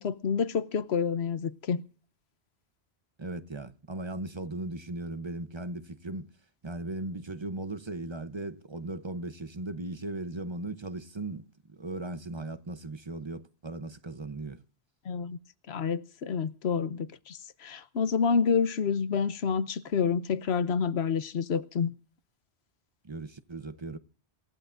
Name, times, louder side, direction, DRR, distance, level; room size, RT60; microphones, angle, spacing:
voice 1, 0.0-1.8 15.1-15.4 15.7-21.9, left 6 dB, 75° left, 1.1 m, -28 dB
voice 2, 3.2-6.3 6.6-14.6 23.0-24.0, right 2 dB, 30° right, 0.8 m, -37 dB
27.0 x 14.5 x 2.6 m
omnidirectional pair, 1.1 m